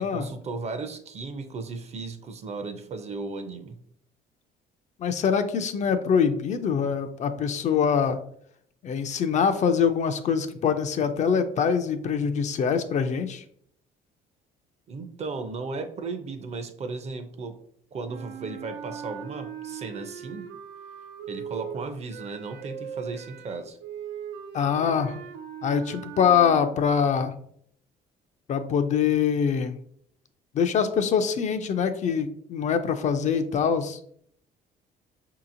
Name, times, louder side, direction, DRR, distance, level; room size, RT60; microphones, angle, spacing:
voice 1, 0.0-3.8 14.9-17.6 17.9-20.5 21.3-23.8, right 3 dB, 40° right, 8 dB, 0.5 m, -35 dB
voice 2, 5.0-8.2 8.8-13.4 24.5-25.2 25.6-27.3 28.5-29.7 30.5-34.0, left 7 dB, 45° left, 9 dB, 0.4 m, -24 dB
sound 1, 18.0-26.7, right 8 dB, 85° right, 0.6 m, -40 dB
5.4 x 2.8 x 2.5 m, 0.67 s
cardioid pair, 110°, 17 cm